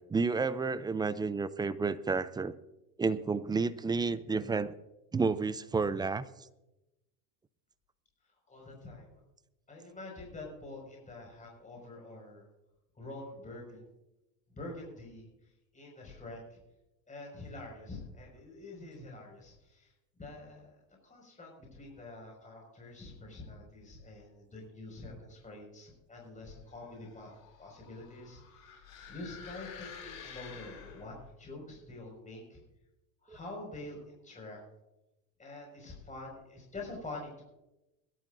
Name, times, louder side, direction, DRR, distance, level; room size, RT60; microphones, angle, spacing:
voice 1, 0.0-2.5 3.0-4.7 5.1-6.2 33.3-33.4, right 4 dB, 10° right, 15 dB, 0.4 m, -31 dB
voice 2, 8.5-9.1 9.7-12.4 13.0-13.8 14.5-15.3 15.7-16.6 17.1-19.9 20.2-20.7 21.0-27.3 27.6-32.6 33.2-34.6 35.4-37.4, left 2 dB, 15° left, -1 dB, 5.5 m, -46 dB
sound 1, 26.9-31.3, left 7 dB, 50° left, 5.0 m, -49 dB
22.0 x 12.5 x 2.6 m, 0.95 s
supercardioid pair, 110°, 42 cm